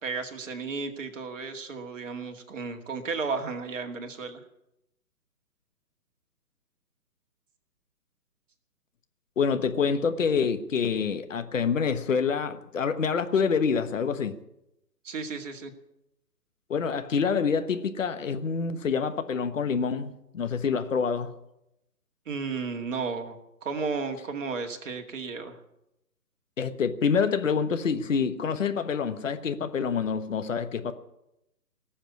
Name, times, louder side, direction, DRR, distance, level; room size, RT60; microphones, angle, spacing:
voice 1, 0.0-4.4 15.0-15.7 22.3-25.6, right 4 dB, 50° right, 2.3 m, -33 dB
voice 2, 9.4-14.4 16.7-21.3 26.6-31.0, left 6 dB, 50° left, 1.3 m, -27 dB
18.5 x 7.3 x 9.7 m
figure-of-eight pair, 140°, 48 cm